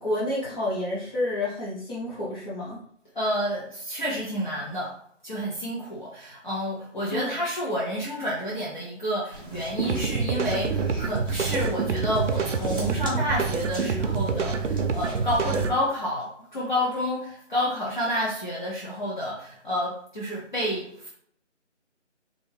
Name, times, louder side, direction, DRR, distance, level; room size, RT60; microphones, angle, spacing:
voice 1, 0.0-2.8 7.1-7.3, left 1 dB, 20° left, -10 dB, 1.2 m, -29 dB
voice 2, 3.1-4.9 5.2-21.1, equal, 40° left, -6 dB, 0.8 m, -29 dB
sound 1, 9.3-15.5, right 1 dB, 15° right, 0.8 m, -41 dB
sound 2, 9.8-15.8, right 5 dB, 75° right, 0.6 m, -27 dB
3.3 x 2.6 x 3.4 m, 0.63 s
figure-of-eight pair, 165°, 37 cm